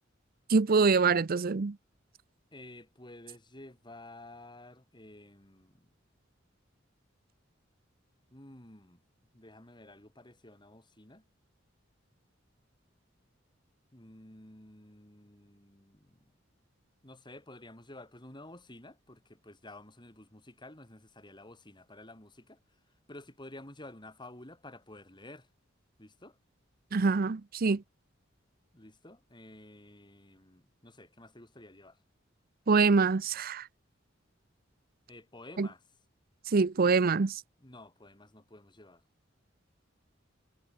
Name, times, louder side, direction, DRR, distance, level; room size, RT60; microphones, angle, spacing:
voice 1, 0.5-1.7 26.9-27.8 32.7-33.7 35.6-35.7 36.5-37.4, right 4 dB, 50° right, 0.6 m, -25 dB
voice 2, 2.5-5.9 8.3-9.0 9.3-11.2 13.9-16.3 17.0-22.6 23.1-25.5 26.0-26.4 28.7-32.0 35.1-35.8 37.6-39.0, left 1 dB, 25° left, 5.4 m, -51 dB
head